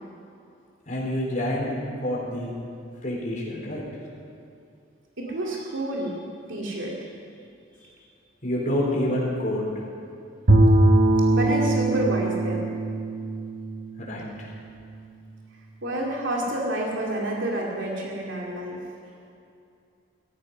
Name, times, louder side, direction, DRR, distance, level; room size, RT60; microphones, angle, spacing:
voice 1, 0.9-2.5 3.0-3.8 8.4-9.7 14.0-14.5, left 1 dB, 45° left, -3 dB, 4.2 m, -27 dB
voice 2, 5.2-6.2 6.5-7.0 11.3-12.7 15.8-18.8, right 1 dB, 85° right, -2 dB, 2.4 m, -29 dB
Bowed string instrument, 10.5-14.7, right 2 dB, 55° right, 1.3 m, -21 dB
16.5 x 14.0 x 5.5 m, 2.5 s
head